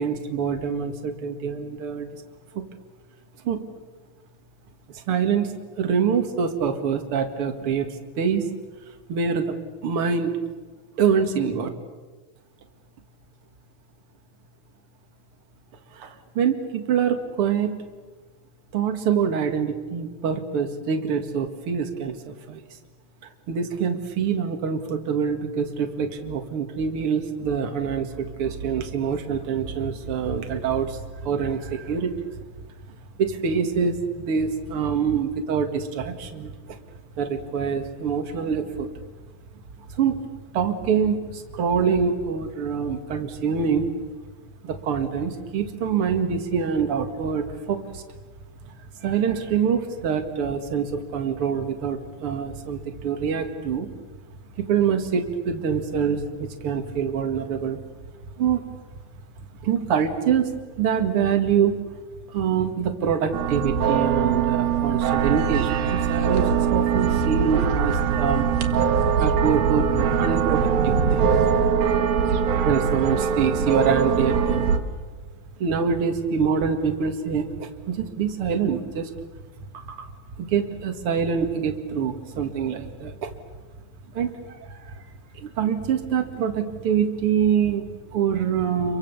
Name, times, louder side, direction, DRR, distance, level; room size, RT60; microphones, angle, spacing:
voice 1, 0.0-2.1 2.5-2.6 3.4-3.6 4.9-7.9 8.2-8.5 9.1-9.6 9.8-10.3 11.0-11.7 15.9-17.8 18.7-22.8 23.2-32.3 33.2-36.8 37.1-38.9 39.9-40.2 40.5-43.9 44.6-48.0 48.8-53.9 54.6-57.8 58.4-58.6 59.6-61.8 62.3-68.5 69.2-71.3 72.6-74.7 75.6-79.1 79.6-80.1 80.4-83.3 84.1-85.0 85.3-89.0, right 7 dB, 45° right, 6 dB, 2.3 m, -25 dB
sound 1, 63.3-74.8, right 7 dB, 80° right, 3.3 m, -22 dB
29.5 x 23.5 x 7.0 m, 1.3 s
omnidirectional pair, 4.2 m